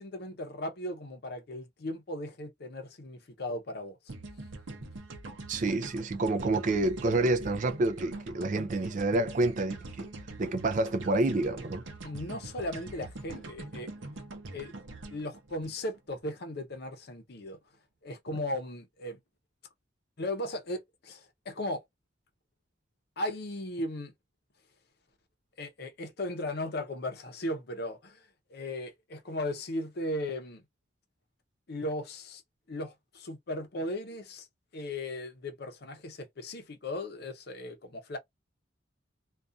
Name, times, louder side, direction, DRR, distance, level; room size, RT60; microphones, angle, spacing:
voice 1, 0.0-4.0 12.0-13.9 14.5-14.7 15.1-17.6 18.0-19.2 20.2-21.8 23.2-24.1 25.6-28.2 28.5-30.6 31.7-32.4 32.7-34.5 34.7-38.2, left 1 dB, 55° left, 0.7 m, -37 dB
sound 1, 4.1-16.3, right 2 dB, 75° right, 0.7 m, -44 dB
voice 2, 5.5-10.1 10.4-11.8, right 2 dB, 40° right, 0.4 m, -28 dB
2.6 x 2.3 x 2.4 m
head